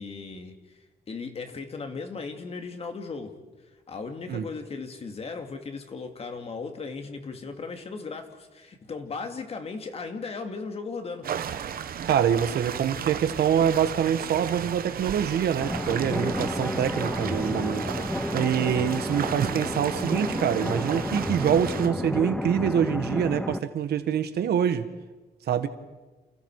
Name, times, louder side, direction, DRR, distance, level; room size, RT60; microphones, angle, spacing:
voice 1, 0.0-3.3 3.9-11.3, left 4 dB, 40° left, 5 dB, 2.6 m, -37 dB
sound 1, 11.2-21.9, right 8 dB, 65° right, 1.3 m, -34 dB
voice 2, 12.0-24.9 25.5-25.7, right 8 dB, 85° right, 10 dB, 1.6 m, -25 dB
sound 2, 15.6-23.6, left 1 dB, 5° left, 0.7 m, -31 dB
30.0 x 29.5 x 4.9 m, 1.2 s
wide cardioid pair, 170°, 16 cm